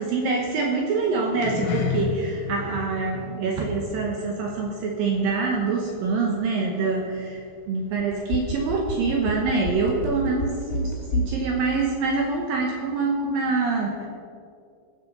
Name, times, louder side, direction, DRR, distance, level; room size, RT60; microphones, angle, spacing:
voice 1, 0.0-14.1, right 4 dB, 75° right, 1 dB, 2.1 m, -25 dB
sound 1, 1.3-5.9 6.2-6.5 7.0-7.1, left 8 dB, 90° left, 3.8 m, -33 dB
sound 2, 8.0-11.4 11.7-11.8, left 1 dB, 65° left, 5.2 m, -28 dB
16.5 x 6.9 x 6.8 m, 2.4 s
omnidirectional pair, 5.5 m